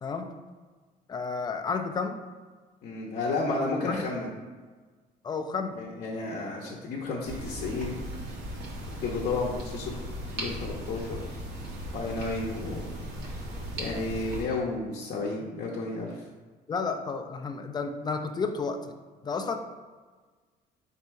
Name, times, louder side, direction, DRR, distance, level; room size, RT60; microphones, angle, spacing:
voice 1, 0.0-0.3 1.1-2.2 3.9-4.0 5.2-5.8 16.7-19.0 19.2-19.6, left 4 dB, 25° left, 6 dB, 0.4 m, -31 dB
voice 2, 2.8-4.3 5.8-8.0 8.9-10.0 10.3-11.2 11.9-12.9 13.7-16.2, left 3 dB, 65° left, -4 dB, 0.7 m, -32 dB
sound 1, 7.2-14.4, right 1 dB, 75° right, 1.0 m, -37 dB
4.2 x 2.7 x 4.5 m, 1.4 s
cardioid pair, 110°, 17 cm